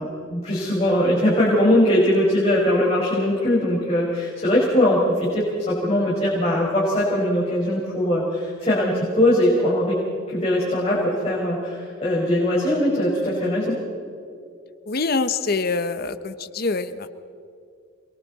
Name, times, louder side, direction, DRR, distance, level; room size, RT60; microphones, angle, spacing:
voice 1, 0.0-10.0 10.3-13.8, left 1 dB, 30° left, -6 dB, 5.0 m, -21 dB
voice 2, 14.9-17.1, left 3 dB, 50° left, 11 dB, 0.9 m, -25 dB
28.5 x 22.5 x 4.1 m, 2.4 s
head